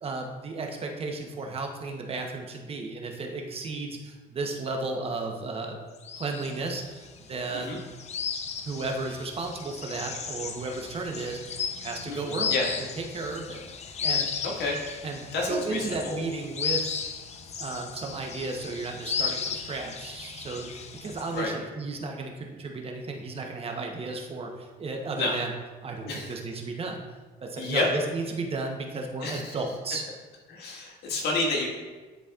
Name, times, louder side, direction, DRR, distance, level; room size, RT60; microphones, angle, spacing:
voice 1, 0.0-5.8 6.1-7.8 8.6-11.4 11.8-13.6 14.0-14.3 15.0-17.0 17.6-25.5 25.8-27.0 27.4-30.1, right 3 dB, 35° right, 2 dB, 0.9 m, -34 dB
sound 1, 6.0-21.4, left 6 dB, 40° left, 0.6 m, -35 dB
voice 2, 12.1-12.6 14.4-14.8 15.3-16.2 21.3-21.5 25.2-25.4 26.0-26.3 27.6-27.9 29.2-29.5 30.5-31.7, left 3 dB, 75° left, -2 dB, 1.6 m, -29 dB
10.0 x 4.1 x 2.4 m, 1.3 s
cardioid pair, 110°, 17 cm